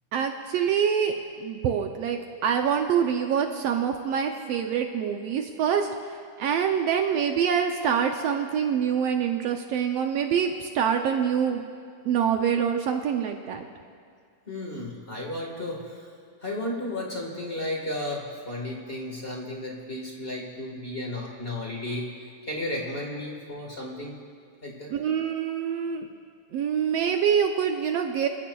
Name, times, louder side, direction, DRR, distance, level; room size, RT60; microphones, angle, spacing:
voice 1, 0.1-11.6 12.0-13.6 24.9-26.1 26.5-28.3, right 7 dB, 75° right, 4 dB, 1.5 m, -25 dB
voice 2, 14.5-16.1 16.4-22.1 22.4-24.2 24.6-24.9, left 1 dB, 30° left, -1 dB, 1.2 m, -33 dB
27.5 x 14.5 x 2.3 m, 2.2 s
omnidirectional pair, 3.3 m